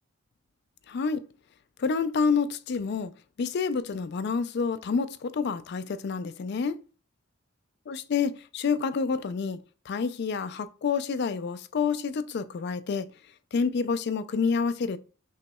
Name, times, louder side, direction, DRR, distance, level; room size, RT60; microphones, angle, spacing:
voice 1, 0.9-1.2 1.8-3.1 3.4-6.8 7.9-9.6 9.9-13.1 13.5-15.0, left 5 dB, 55° left, 0.4 m, -28 dB
5.5 x 3.0 x 2.2 m
head